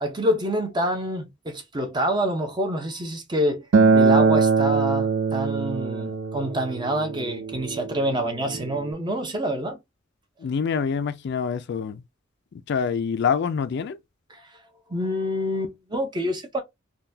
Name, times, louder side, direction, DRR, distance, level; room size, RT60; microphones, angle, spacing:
voice 1, 0.0-3.7 3.9-9.8 14.3-14.5 14.9-16.6, equal, 20° right, 0.7 m, -27 dB
Acoustic guitar, 3.7-8.9, right 4 dB, 65° right, 0.5 m, -22 dB
voice 2, 10.4-12.0 12.5-14.0, left 6 dB, 55° left, 0.4 m, -26 dB
3.8 x 2.3 x 2.7 m
head